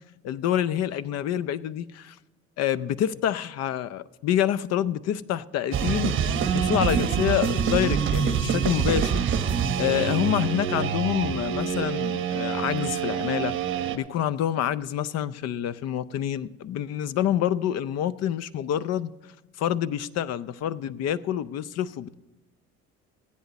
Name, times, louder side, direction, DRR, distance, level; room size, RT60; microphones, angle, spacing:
voice 1, 0.2-2.2 2.6-9.2 9.8-13.6 13.9-19.1 19.6-22.1, left 11 dB, 60° left, 17 dB, 0.6 m, -27 dB
sound 1, 5.7-14.0, right 7 dB, 45° right, 1.0 m, -26 dB
15.0 x 10.5 x 4.1 m, 1.1 s
cardioid pair, 100°, 29 cm